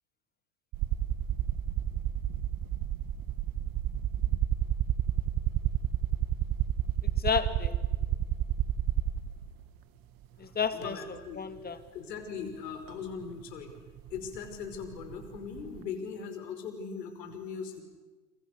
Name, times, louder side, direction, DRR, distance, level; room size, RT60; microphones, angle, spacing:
sound 1, 0.7-9.5 10.6-10.7 12.9-13.0 13.2-15.8, right 11 dB, 45° right, 1.8 m, -30 dB
voice 1, 7.0-7.8 10.4-11.8, left 6 dB, 20° left, 2.6 m, -32 dB
voice 2, 10.4-11.4 11.9-13.7 14.1-17.8, left 6 dB, 70° left, 5.6 m, -40 dB
29.5 x 29.0 x 6.8 m
hypercardioid pair, 90°, 50 cm